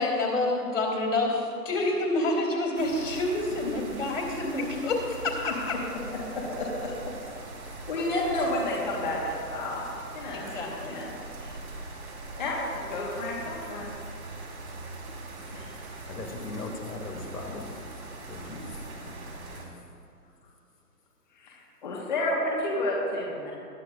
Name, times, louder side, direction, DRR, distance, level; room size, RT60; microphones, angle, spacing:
voice 1, 0.0-5.7 10.3-11.0, left 2 dB, 50° left, -1 dB, 3.1 m, -28 dB
sound 1, 2.8-19.6, right 2 dB, 60° right, 2.8 m, -41 dB
voice 2, 6.3-6.9 7.2-7.4 7.9-9.8 10.1-11.1 12.4-13.9 15.5-15.8 21.3-23.5, left 1 dB, 30° left, -4 dB, 1.4 m, -31 dB
voice 3, 16.1-17.9 18.3-19.6, left 2 dB, 75° left, 0 dB, 2.5 m, -39 dB
20.5 x 11.0 x 2.5 m, 2.6 s
hypercardioid pair, 160°, 48 cm